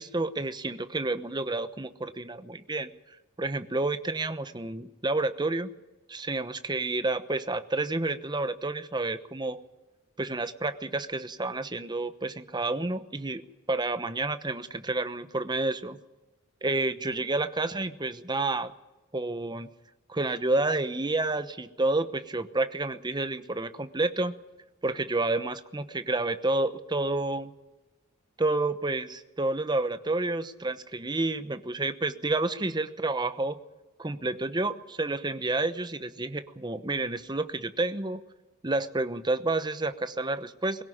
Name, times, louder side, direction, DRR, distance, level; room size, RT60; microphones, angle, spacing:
voice 1, 0.0-5.7 6.1-9.6 10.2-16.0 16.6-18.7 19.1-19.7 20.1-24.3 24.8-27.5 28.4-33.6 34.0-38.2 38.6-40.8, right 2 dB, 20° right, 11 dB, 1.0 m, -30 dB
21.0 x 17.5 x 8.8 m, 1.1 s
head